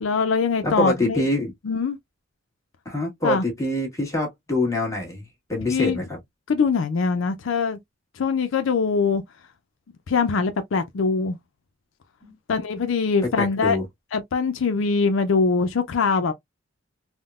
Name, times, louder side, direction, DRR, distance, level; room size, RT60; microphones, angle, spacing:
voice 1, 0.0-1.3 1.6-2.0 3.2-3.4 5.7-6.0 6.5-7.8 8.2-9.2 10.1-11.4 12.5-13.8 14.1-16.3, left 5 dB, 75° left, 0.5 m, -22 dB
voice 2, 0.6-1.5 2.8-6.2 12.2-12.3 13.2-13.8, left 1 dB, 15° left, 1.3 m, -25 dB
3.6 x 2.1 x 2.3 m
head